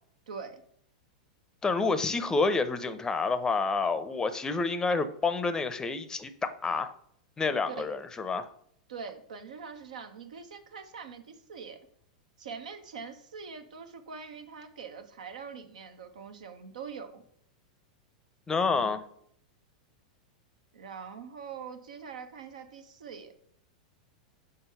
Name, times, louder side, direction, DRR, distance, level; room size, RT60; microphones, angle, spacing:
voice 1, 0.3-0.6 7.7-7.9 8.9-11.8 12.4-17.2 18.7-19.0 20.7-23.3, right 6 dB, 75° right, 8 dB, 0.8 m, -43 dB
voice 2, 1.6-6.9 7.4-8.5 18.5-19.0, left 4 dB, 15° left, 12 dB, 0.6 m, -28 dB
6.2 x 3.7 x 5.4 m, 0.67 s
hypercardioid pair, 100°, 4 cm